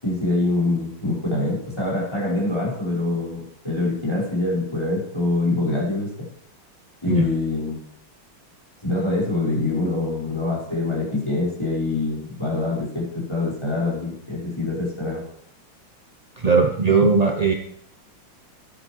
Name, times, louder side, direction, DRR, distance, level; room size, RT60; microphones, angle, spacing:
voice 1, 0.0-6.1 7.0-7.8 8.8-15.2 17.0-17.1, left 2 dB, 10° left, -7 dB, 5.6 m, -24 dB
voice 2, 16.4-17.5, right 4 dB, 40° right, 3 dB, 0.5 m, -18 dB
14.0 x 10.5 x 4.7 m, 0.68 s
omnidirectional pair, 2.2 m